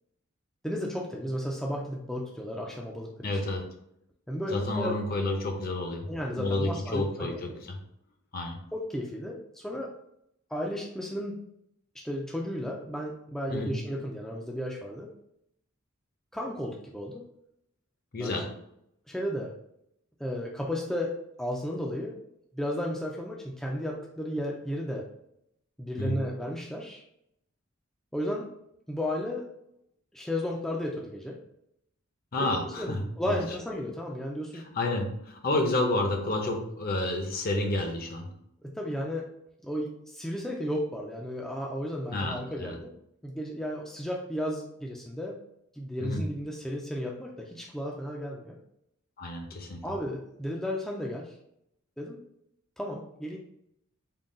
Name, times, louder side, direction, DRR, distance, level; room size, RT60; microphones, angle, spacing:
voice 1, 0.6-3.3 4.3-5.0 6.1-7.6 8.7-9.9 10.5-11.4 11.9-15.1 16.3-17.2 18.2-18.4 19.1-19.6 20.2-22.2 22.5-25.1 25.8-27.0 28.1-28.5 28.9-29.5 30.1-31.4 32.4-34.7 38.6-39.3 39.6-42.9 43.2-45.4 45.7-48.6 49.8-51.3 52.0-52.2 52.8-53.4, equal, ahead, -2 dB, 0.3 m, -34 dB
voice 2, 3.2-3.6 4.5-6.1 6.4-7.8 8.3-8.6 13.5-13.7 18.1-18.5 26.0-26.2 32.3-33.4 34.5-38.3 42.1-42.8 46.0-46.3 49.2-49.8, left 2 dB, 45° left, 3 dB, 0.6 m, -30 dB
3.8 x 2.2 x 3.7 m, 0.75 s
head